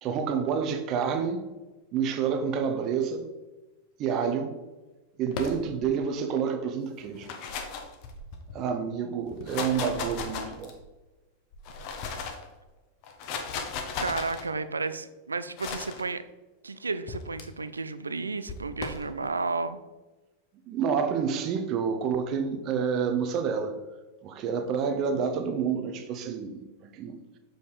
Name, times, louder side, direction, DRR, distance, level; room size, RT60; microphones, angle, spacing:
voice 1, 0.0-1.4 1.9-3.3 4.0-4.5 5.2-7.3 8.5-10.7 20.7-23.7 24.2-27.2, right 6 dB, 35° right, 7 dB, 0.8 m, -28 dB
sound 1, 5.3-6.0 7.0-8.5 9.3-10.9 11.5-12.5 13.0-14.4 15.6-16.0 17.1-17.4 18.5-19.1, left 5 dB, 45° left, 0.9 m, -36 dB
voice 2, 14.0-16.2 16.6-19.8, right 4 dB, 75° right, 13 dB, 0.4 m, -32 dB
6.8 x 5.0 x 3.9 m, 1.1 s
figure-of-eight pair, 90°, 0 cm